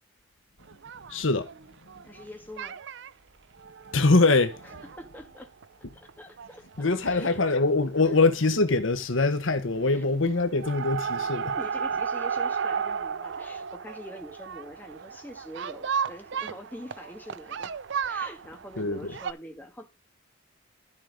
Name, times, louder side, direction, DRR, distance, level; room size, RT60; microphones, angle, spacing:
sound 1, 0.7-2.2 2.6-3.1 3.6-5.6 6.1-6.2 6.4-6.5 6.8-6.9 8.2-8.5 8.7-9.2 9.5-10.0 10.4-19.3, right 6 dB, 60° right, 0.5 m, -34 dB
voice 1, 1.1-1.5 3.9-4.6 6.8-11.5 18.8-19.1, left 3 dB, 70° left, 1.2 m, -23 dB
voice 2, 2.0-2.8 5.0-5.5 5.9-7.4 8.0-8.1 9.9-10.0 11.5-17.7 18.0-19.8, equal, 10° left, 1.7 m, -44 dB
13.0 x 4.8 x 5.1 m
head